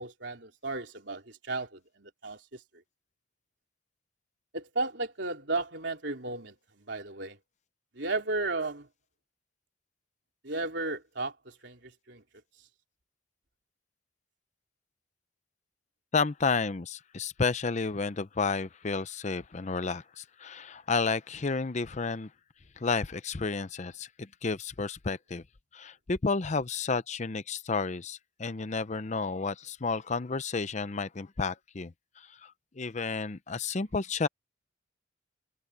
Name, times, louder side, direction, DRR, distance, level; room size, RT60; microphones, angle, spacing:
voice 1, 0.0-2.4 4.5-7.4 8.0-8.9 10.4-11.3 11.6-12.2, right 3 dB, 65° right, 3.8 m, -34 dB
voice 2, 16.1-22.3 22.8-25.4 25.7-34.3, left 4 dB, 40° left, 0.6 m, -31 dB
head